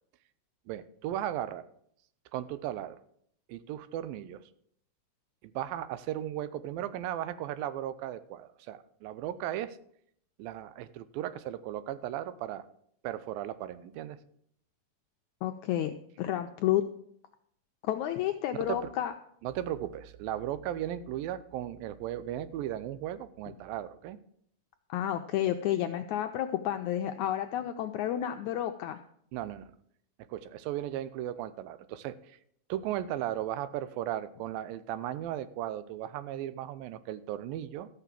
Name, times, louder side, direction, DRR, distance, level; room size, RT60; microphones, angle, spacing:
voice 1, 0.7-1.6 2.3-3.0 3.5-4.4 5.4-9.8 10.4-12.7 13.0-14.2 18.5-18.9 19.4-24.2 29.3-29.7 30.3-32.4 32.7-37.9, right 12 dB, 90° right, 14 dB, 2.5 m, -36 dB
voice 2, 15.4-16.8 17.8-19.1 24.9-29.0, left 12 dB, 90° left, 6 dB, 1.7 m, -31 dB
13.5 x 5.9 x 7.4 m, 0.68 s
omnidirectional pair, 4.0 m